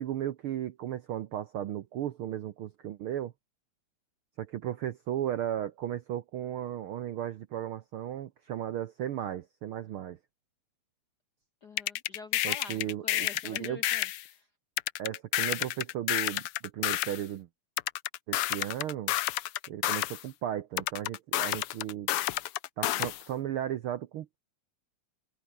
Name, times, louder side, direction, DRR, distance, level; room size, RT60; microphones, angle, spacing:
voice 1, 0.0-3.3 4.4-10.2 12.4-13.8 15.0-17.5 18.3-19.1 19.7-22.1 22.8-24.4, right 11 dB, 70° right, 1.3 m, -35 dB
voice 2, 11.6-14.5, left 4 dB, 50° left, 1.2 m, -47 dB
sound 1, 11.8-14.2 14.8-17.2 17.8-20.2 20.8-23.2, left 14 dB, 75° left, 1.4 m, -30 dB
omnidirectional pair, 3.4 m